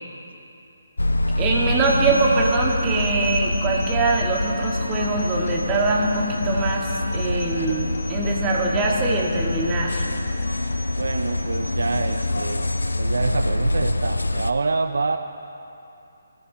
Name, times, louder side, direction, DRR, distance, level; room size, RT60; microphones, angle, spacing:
sound 1, 1.0-14.5, left 1 dB, 85° left, 0.7 m, -25 dB
voice 1, 1.4-10.0, right 3 dB, 20° right, -2 dB, 2.0 m, -23 dB
sound 2, 1.8-12.9, left 2 dB, 55° left, 2.1 m, -36 dB
voice 2, 11.0-12.7 13.0-15.2, right 3 dB, 70° right, 8 dB, 0.7 m, -26 dB
23.0 x 14.5 x 3.1 m, 2.7 s
figure-of-eight pair, 145°, 0 cm